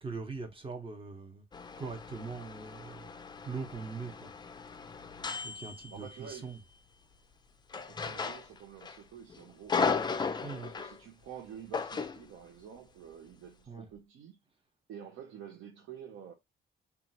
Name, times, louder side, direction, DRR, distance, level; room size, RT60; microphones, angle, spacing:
voice 1, 0.0-1.4 1.8-3.1 3.4-4.3 5.4-6.6 10.4-10.7 13.7-13.9, right 4 dB, 25° right, 0.8 m, -41 dB
sound 1, 1.5-6.5 7.7-9.0 9.3-11.0 11.7-12.2, left 5 dB, 20° left, 0.4 m, -36 dB
voice 2, 5.6-6.5 7.7-9.9 10.6-14.4 14.9-16.3, right 8 dB, 80° right, 0.6 m, -49 dB
2.8 x 2.4 x 2.7 m
cardioid pair, 90°, 20 cm